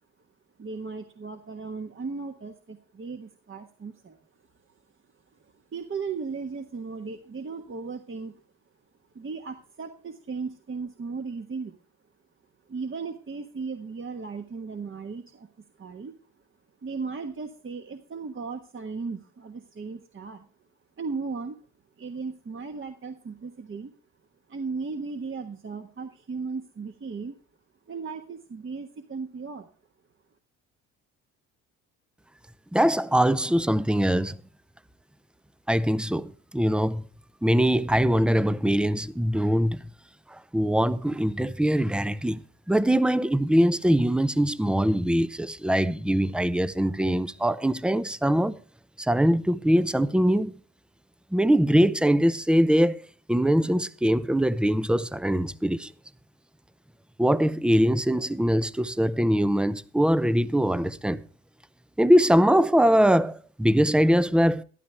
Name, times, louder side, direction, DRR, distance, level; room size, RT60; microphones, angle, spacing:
voice 1, 0.6-4.2 5.4-8.4 9.1-11.7 12.7-15.5 15.8-16.1 16.8-20.5 21.0-21.6 22.0-23.9 24.5-27.4 27.9-29.7, right 4 dB, 35° right, 1.4 m, -36 dB
voice 2, 32.7-34.3 35.7-37.0 37.4-39.8 40.5-42.4 42.7-48.6 49.0-50.5 51.3-53.0 53.3-55.9 57.2-61.2 62.0-64.6, equal, 5° right, 0.6 m, -22 dB
13.5 x 11.5 x 3.4 m
supercardioid pair, 65°, 37 cm